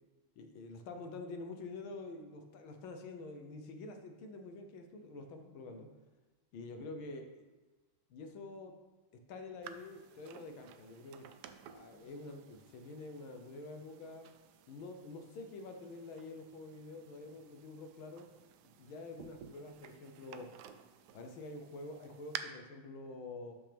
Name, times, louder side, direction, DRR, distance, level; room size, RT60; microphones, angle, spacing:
voice 1, 0.4-5.9 6.5-7.4 8.1-8.7 9.3-11.3 11.7-14.3 14.7-18.3 18.6-20.5 21.1-23.5, left 3 dB, 75° left, 5 dB, 1.7 m, -47 dB
sound 1, 9.6-22.4, right 10 dB, 80° right, 0.9 m, -53 dB
12.0 x 5.7 x 3.4 m, 1.2 s
omnidirectional pair, 2.3 m